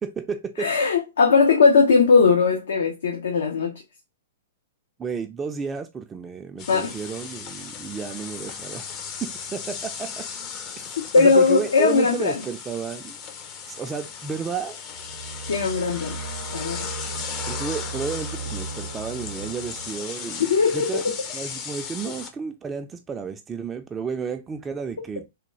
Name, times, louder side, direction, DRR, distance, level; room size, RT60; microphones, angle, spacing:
voice 1, 0.0-0.7 5.0-8.9 9.2-10.3 10.8-10.9 11.2-13.2 13.7-14.8 17.5-20.5 20.7-21.0 21.3-25.3, right 6 dB, 15° right, 0.3 m, -32 dB
voice 2, 0.6-3.7 6.7-6.9 11.1-12.4 15.5-16.2 16.5-16.9 20.4-21.2, left 4 dB, 75° left, 0.6 m, -19 dB
sound 1, 6.6-22.3, left 6 dB, 35° left, 0.5 m, -36 dB
sound 2, 14.9-20.0, right 4 dB, 90° right, 0.5 m, -36 dB
3.5 x 2.3 x 3.0 m
hypercardioid pair, 115°, 0 cm